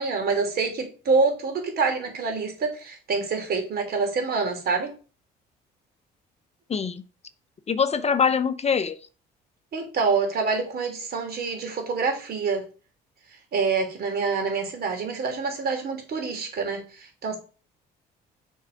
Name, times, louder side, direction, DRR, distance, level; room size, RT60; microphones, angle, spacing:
voice 1, 0.0-4.9 9.7-12.6 13.5-17.4, right 4 dB, 55° right, 4 dB, 3.0 m, -26 dB
voice 2, 6.7-7.0 7.7-9.0, left 6 dB, 35° left, 12 dB, 0.7 m, -23 dB
7.2 x 4.6 x 5.0 m, 0.36 s
supercardioid pair, 70°, 19 cm